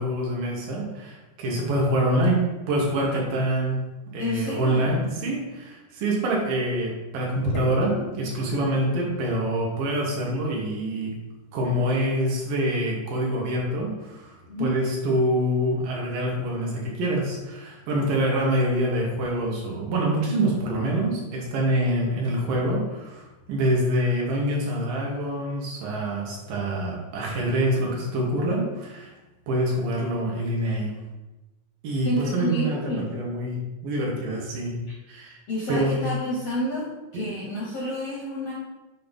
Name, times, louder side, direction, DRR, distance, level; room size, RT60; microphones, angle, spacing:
voice 1, 0.0-3.8 4.1-7.9 8.2-11.1 11.5-29.1 29.5-30.9 31.8-34.7 35.1-35.4 35.7-36.1 37.1-37.2, right 1 dB, 75° right, -2 dB, 2.9 m, -26 dB
voice 2, 4.2-5.0 14.5-14.7 32.0-33.0 34.9-35.0 35.5-36.9 37.1-38.5, left 1 dB, 70° left, -4 dB, 1.5 m, -29 dB
7.8 x 2.8 x 5.2 m, 1.1 s
omnidirectional pair, 4.1 m